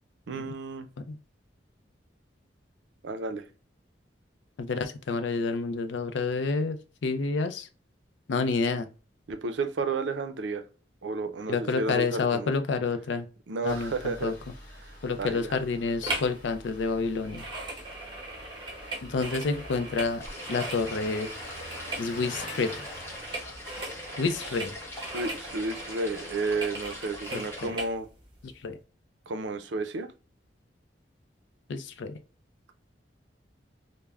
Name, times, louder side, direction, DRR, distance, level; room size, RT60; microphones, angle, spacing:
voice 1, 0.3-0.9 3.0-3.5 9.3-10.6 11.0-12.5 13.5-14.3 14.8-15.5 25.1-28.1 29.3-30.1, right 3 dB, 75° right, 0.4 m, -32 dB
voice 2, 4.6-7.7 8.3-8.9 11.5-13.3 13.6-14.3 15.0-17.4 19.0-20.2 20.5-21.3 22.0-22.7 24.2-24.8 27.3-27.8 28.4-28.8 31.7-32.2, left 4 dB, 75° left, 0.4 m, -29 dB
Engine starting, 13.7-27.1, left 1 dB, 45° left, 1.2 m, -47 dB
sound 1, 16.0-16.4 16.6-27.9 28.5-28.6, right 2 dB, 25° right, 0.8 m, -39 dB
sound 2, 20.2-27.7, left 1 dB, 15° left, 0.6 m, -43 dB
3.3 x 2.1 x 2.3 m
head